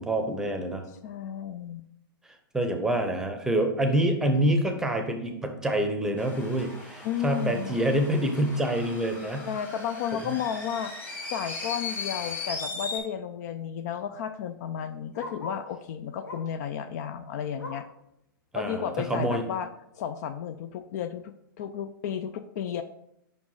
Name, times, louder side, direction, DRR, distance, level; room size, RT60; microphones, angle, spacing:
voice 1, 0.0-0.8 2.5-9.5 10.1-10.3 18.5-19.4, right 1 dB, 5° right, 5 dB, 0.7 m, -27 dB
voice 2, 1.0-1.8 7.0-7.8 9.5-10.9 11.3-17.9 18.5-19.7 19.9-22.8, left 9 dB, 45° left, 10 dB, 0.3 m, -33 dB
sound 1, 6.2-13.0, left 4 dB, 15° left, 1.3 m, -38 dB
Bark, 12.9-15.8 16.2-16.6 17.0-18.0 18.5-18.6 19.0-19.1 19.7-19.8, left 2 dB, 85° left, 1.0 m, -44 dB
5.4 x 4.6 x 3.9 m, 0.78 s
hypercardioid pair, 120°, 12 cm